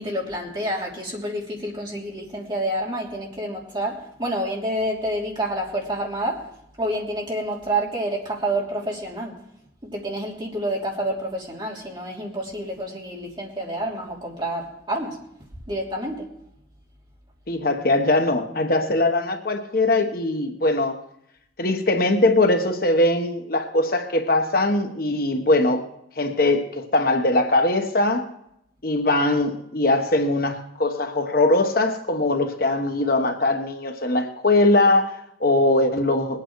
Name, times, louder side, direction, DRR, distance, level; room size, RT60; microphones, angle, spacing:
voice 1, 0.0-6.5 6.8-9.4 9.8-15.2 15.7-16.3, right 1 dB, 25° right, -3 dB, 3.1 m, -28 dB
voice 2, 17.5-21.0 21.6-25.9 26.2-28.3 28.8-36.4, left 2 dB, 50° left, 5 dB, 1.2 m, -21 dB
21.5 x 8.9 x 4.7 m, 0.76 s
head